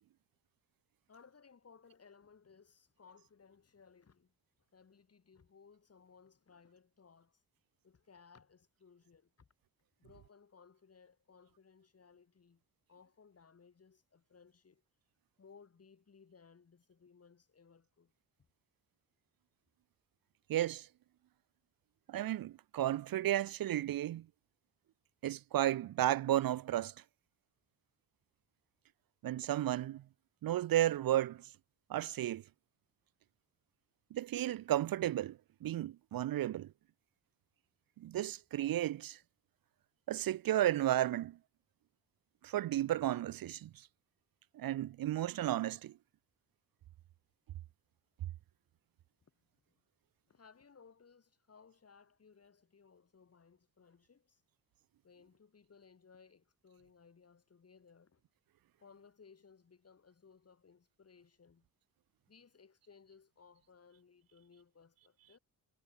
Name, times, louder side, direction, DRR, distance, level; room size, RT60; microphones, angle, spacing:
voice 1, 1.1-4.3 4.7-7.4 7.8-9.5 10.0-12.6 12.9-14.8 15.4-18.1 49.7-49.8 50.3-54.4 55.0-58.2 58.8-61.7 62.3-65.4, left 5 dB, 40° left, 6.4 m, -62 dB
voice 2, 20.5-20.9 22.1-24.2 25.2-26.9 29.2-30.0 30.4-31.4 31.9-32.4 34.1-36.7 38.0-39.2 40.1-41.4 42.4-43.7 44.5-45.9, right 13 dB, 70° right, 0.5 m, -33 dB
wide cardioid pair, 170°, 37 cm